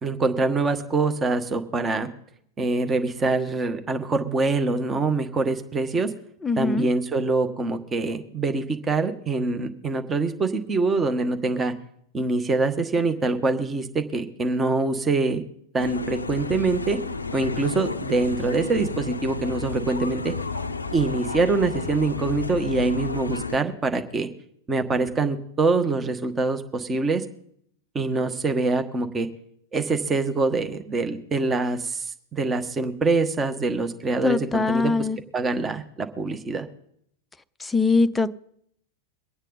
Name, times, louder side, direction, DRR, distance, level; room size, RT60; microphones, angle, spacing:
voice 1, 0.0-2.1 2.6-6.1 6.6-11.7 12.1-15.4 15.7-17.0 17.3-20.3 20.9-24.3 24.7-27.2 27.9-29.3 29.7-35.1 35.3-36.7, right 3 dB, 20° right, 1.3 m, -24 dB
voice 2, 6.4-6.9 34.2-35.2 37.6-38.3, left 4 dB, 10° left, 0.6 m, -22 dB
sound 1, 15.8-23.6, left 4 dB, 80° left, 0.5 m, -31 dB
23.5 x 8.9 x 4.0 m
figure-of-eight pair, 90°, 0 cm